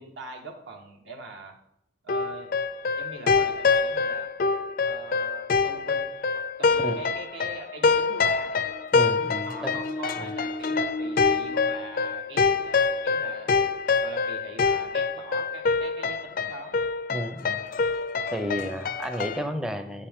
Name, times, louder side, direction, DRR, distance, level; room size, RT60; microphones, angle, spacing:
voice 1, 0.0-1.5 2.0-2.5 3.0-4.3 4.8-8.5 9.4-13.5 14.0-16.8, right 2 dB, 70° right, 1 dB, 1.4 m, -42 dB
sound 1, 2.1-19.5, left 4 dB, 45° left, 0.4 m, -26 dB
voice 2, 8.9-9.8 10.2-10.3 17.1-17.6 18.3-20.1, equal, 5° right, 7 dB, 0.5 m, -32 dB
8.7 x 7.2 x 3.6 m, 0.75 s
head